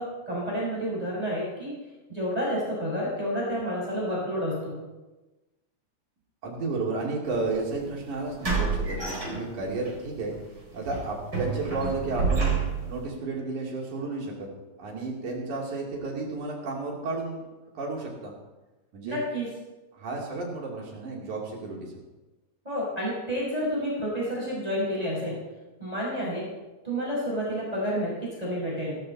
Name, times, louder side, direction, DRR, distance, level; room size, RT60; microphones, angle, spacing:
voice 1, 0.0-1.7 2.1-4.8 19.0-19.5 22.6-25.4 25.8-26.4 26.8-28.9, equal, 10° right, -6 dB, 5.7 m, -30 dB
voice 2, 6.4-10.3 10.7-14.5 14.8-17.4 17.7-18.3 18.9-19.2 19.9-21.9, right 3 dB, 80° right, -2 dB, 4.3 m, -32 dB
sound 1, 7.3-7.5 8.4-9.9 10.3-10.5 10.9-13.0, right 4 dB, 35° right, 4.8 m, -28 dB
16.5 x 12.5 x 4.2 m, 1.1 s
omnidirectional pair, 3.4 m